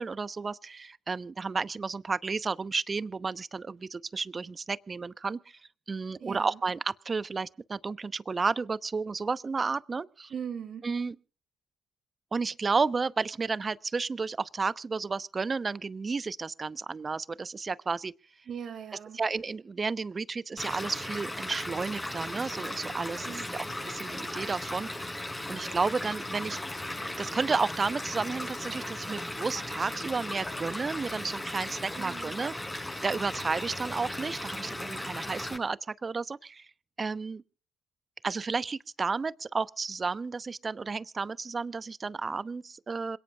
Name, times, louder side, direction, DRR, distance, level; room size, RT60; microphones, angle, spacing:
voice 1, 0.0-5.6 5.9-10.3 10.8-11.1 12.3-18.1 19.1-24.9 25.5-26.6 27.0-36.7 37.0-37.4 38.2-43.2, right 4 dB, 40° right, 0.9 m, -32 dB
voice 2, 6.2-6.6 10.3-10.9 18.5-19.2 23.2-23.7 31.9-32.4, right 7 dB, 60° right, 4.7 m, -40 dB
Stream / Liquid, 20.6-35.6, left 1 dB, 20° left, 7.3 m, -37 dB
27.0 x 17.5 x 2.4 m
hypercardioid pair, 40°, 0 cm